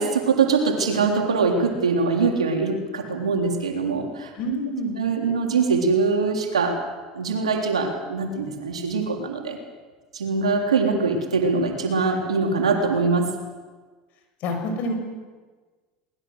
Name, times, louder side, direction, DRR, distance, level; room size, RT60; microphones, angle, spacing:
voice 1, 0.0-4.3 5.0-6.8 7.1-9.6 10.1-13.3, right 4 dB, 90° right, 2 dB, 3.6 m, -23 dB
voice 2, 4.4-5.0 14.4-14.9, equal, 55° left, 5 dB, 6.8 m, -27 dB
22.5 x 20.0 x 8.0 m, 1.4 s
hypercardioid pair, 80°, 3 cm